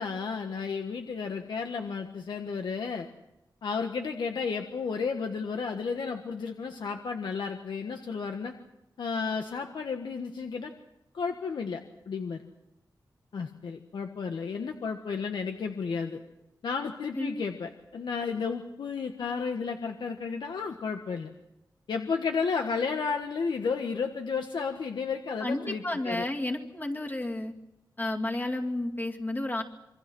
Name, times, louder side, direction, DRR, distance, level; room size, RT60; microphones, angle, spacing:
voice 1, 0.0-3.1 3.6-8.5 9.0-10.7 11.1-12.4 13.3-16.2 16.6-21.3 21.9-26.3, left 5 dB, 90° left, 4 dB, 1.5 m, -32 dB
voice 2, 25.4-27.5 28.0-29.6, left 1 dB, 25° left, 1 dB, 2.4 m, -31 dB
27.0 x 24.0 x 6.2 m, 0.90 s
wide cardioid pair, 170°, 8 cm